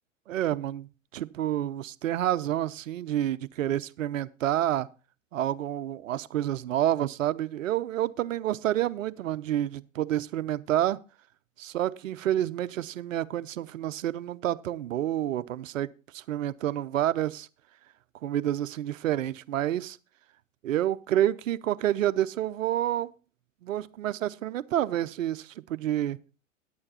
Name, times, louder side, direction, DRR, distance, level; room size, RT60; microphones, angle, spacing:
voice 1, 0.3-4.9 5.3-11.0 11.6-17.5 18.2-20.0 20.6-23.1 23.6-26.2, right 12 dB, 75° right, 0.7 m, -29 dB
10.5 x 8.8 x 4.1 m
hypercardioid pair, 110°, 39 cm